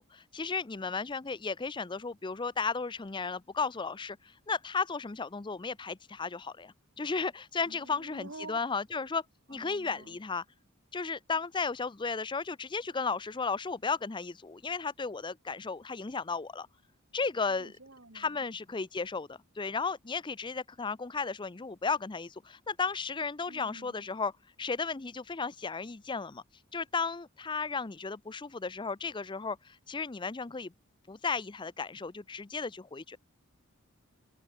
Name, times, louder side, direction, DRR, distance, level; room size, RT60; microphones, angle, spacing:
voice 1, 0.0-10.4 10.9-16.7 17.1-17.7 18.1-24.3 24.6-26.4 26.7-30.7 31.1-33.2, left 4 dB, 20° left, 0.5 m, -34 dB
voice 2, 7.7-8.6 9.5-10.2 17.5-18.5 23.5-24.1, right 2 dB, 60° right, 4.5 m, -49 dB
head